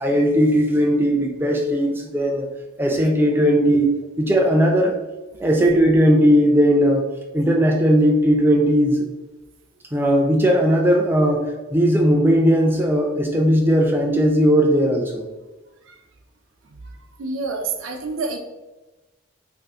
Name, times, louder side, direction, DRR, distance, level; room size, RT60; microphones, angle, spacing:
voice 1, 0.0-2.5 2.8-3.9 4.2-4.9 5.4-7.0 7.3-9.0 9.9-15.3, equal, 10° right, 1 dB, 0.3 m, -17 dB
voice 2, 17.2-18.4, right 3 dB, 90° right, 4 dB, 0.5 m, -27 dB
2.6 x 2.4 x 3.5 m, 1.1 s
head